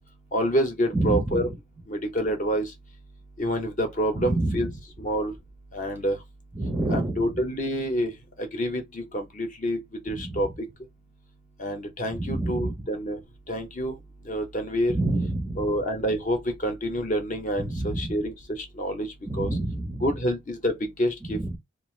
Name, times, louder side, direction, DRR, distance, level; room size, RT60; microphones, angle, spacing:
voice 1, 0.3-1.5 1.9-2.7 3.4-4.7 5.0-5.3 5.7-6.2 6.9-8.1 8.4-9.8 10.1-10.5 11.6-13.2 13.5-13.9 14.3-14.9 15.6-19.1 19.4-19.5 20.0-20.7 21.0-21.4, equal, 40° left, 0.7 m, -27 dB
voice 2, 0.9-1.4 4.2-4.6 6.6-7.2 10.1-10.3 12.2-12.7 14.9-15.7 17.6-18.1 19.3-20.0 21.3-21.5, right 2 dB, 10° right, 0.5 m, -27 dB
2.4 x 2.4 x 3.0 m
head